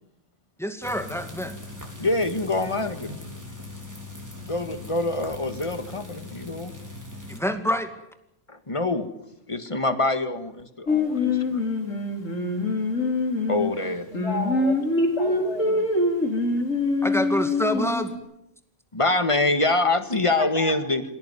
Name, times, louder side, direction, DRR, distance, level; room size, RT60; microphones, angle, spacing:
voice 1, 0.6-1.6 7.3-7.9 17.0-18.1, equal, ahead, 7 dB, 2.2 m, -27 dB
sound 1, 0.8-7.4, left 2 dB, 15° right, 4.3 m, -40 dB
voice 2, 2.0-3.2 4.4-6.8 8.5-9.1 9.5-11.3 13.5-14.1 18.9-21.0, left 2 dB, 25° left, 9 dB, 1.8 m, -25 dB
Singing, 10.9-18.2, left 2 dB, 90° left, 3.6 m, -24 dB
voice 3, 14.1-15.8 20.4-20.7, left 1 dB, 60° left, -1 dB, 5.4 m, -32 dB
26.5 x 17.0 x 9.6 m, 0.85 s
omnidirectional pair, 1.3 m